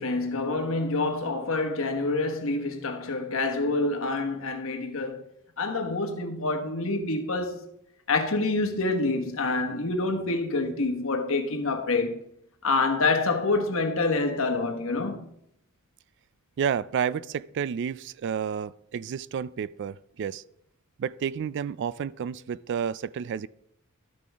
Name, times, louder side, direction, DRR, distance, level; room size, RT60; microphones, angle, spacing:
voice 1, 0.0-5.2 5.6-7.7 8.1-12.3 12.6-15.3, left 3 dB, 65° left, 1.2 m, -27 dB
voice 2, 16.6-20.4 21.0-23.5, right 7 dB, 55° right, 0.3 m, -30 dB
12.5 x 6.1 x 3.5 m
head